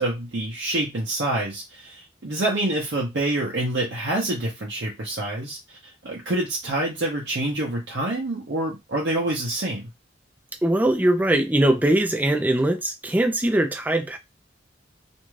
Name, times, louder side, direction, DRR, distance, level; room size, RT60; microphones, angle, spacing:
voice 1, 0.0-9.9, right 1 dB, 65° right, 0.7 m, -27 dB
voice 2, 10.6-14.2, right 1 dB, 10° right, 0.4 m, -21 dB
2.6 x 2.3 x 3.1 m
head